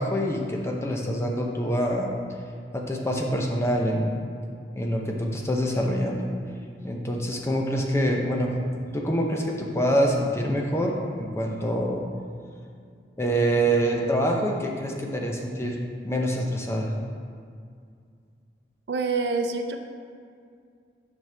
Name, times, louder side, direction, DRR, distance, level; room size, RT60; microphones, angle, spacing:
voice 1, 0.0-2.1 2.7-4.2 4.7-6.3 6.8-8.5 8.9-12.0 13.2-15.8 16.0-16.9, equal, 15° left, 0 dB, 0.7 m, -25 dB
voice 2, 18.9-19.8, right 4 dB, 70° right, 5 dB, 0.5 m, -26 dB
9.1 x 5.2 x 3.4 m, 2.2 s
head